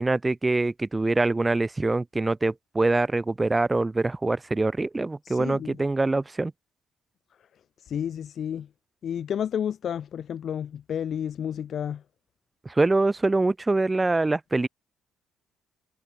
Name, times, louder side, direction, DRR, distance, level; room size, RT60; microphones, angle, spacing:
voice 1, 0.0-6.5 12.6-14.7, right 2 dB, 20° right, 0.8 m, -24 dB
voice 2, 5.2-5.8 7.8-8.7 9.0-12.0, left 9 dB, 55° left, 0.5 m, -31 dB
hypercardioid pair, 50°, 0 cm